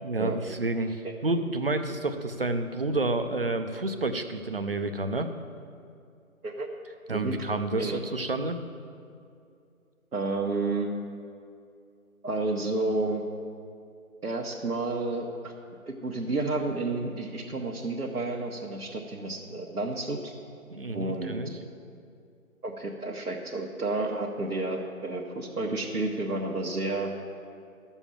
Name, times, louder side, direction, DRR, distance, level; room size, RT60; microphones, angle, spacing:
voice 1, 0.0-5.3 7.1-8.6 20.7-21.5, right 2 dB, 40° right, 7 dB, 0.6 m, -29 dB
voice 2, 10.1-10.9 12.2-13.2 14.2-15.5 15.8-20.3 20.9-21.3 22.6-27.1, right 2 dB, 85° right, -3 dB, 1.3 m, -31 dB
11.5 x 7.1 x 7.1 m, 2.4 s
figure-of-eight pair, 160°, 44 cm